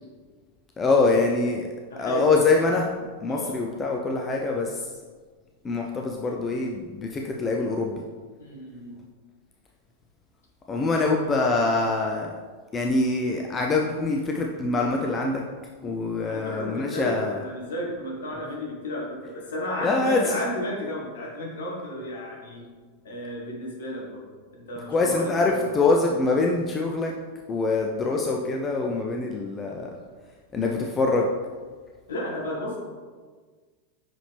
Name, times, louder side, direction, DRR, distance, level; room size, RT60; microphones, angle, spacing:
voice 1, 0.8-1.7 2.0-2.9 3.2-4.9 5.6-8.0 10.7-12.3 12.7-15.4 15.8-17.4 19.8-20.4 24.9-27.1 27.5-29.9 30.5-31.3, left 3 dB, 20° left, 0 dB, 0.5 m, -24 dB
voice 2, 1.9-2.8 3.3-3.6 8.4-9.0 16.2-22.7 23.0-24.2 24.5-25.8 32.1-32.8, equal, 60° left, -3 dB, 1.6 m, -33 dB
5.8 x 4.8 x 3.4 m, 1.5 s
figure-of-eight pair, 90°, 0 cm